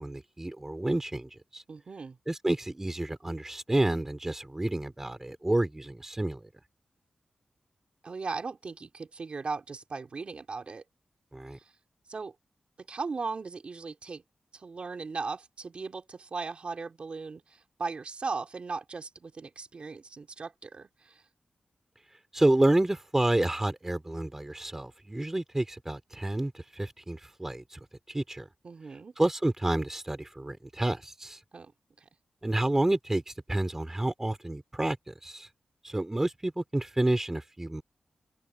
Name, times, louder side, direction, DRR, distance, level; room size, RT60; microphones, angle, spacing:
voice 1, 0.0-1.6 2.3-6.4 11.3-11.6 22.3-27.8 28.1-28.5 29.2-31.4 32.4-35.5 35.8-37.8, right 1 dB, 15° right, 3.3 m, -29 dB
voice 2, 1.7-2.2 8.0-10.8 11.6-11.7 12.1-12.3 12.8-14.2 14.5-21.2 28.6-29.1 31.5-31.7 32.0-32.1, right 4 dB, 50° right, 3.0 m, -38 dB
wide cardioid pair, 115°, 2 cm